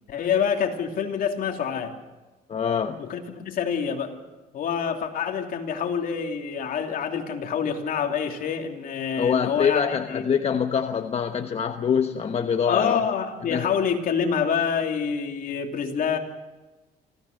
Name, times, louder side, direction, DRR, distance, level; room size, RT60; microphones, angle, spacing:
voice 1, 0.1-2.0 3.0-4.1 4.5-10.2 12.7-16.2, left 7 dB, 55° left, 3 dB, 2.9 m, -27 dB
voice 2, 2.5-3.0 9.2-13.0 13.5-13.7, left 7 dB, 40° left, 6 dB, 1.2 m, -24 dB
26.0 x 16.0 x 6.6 m, 1.2 s
cardioid pair, 110°, 17 cm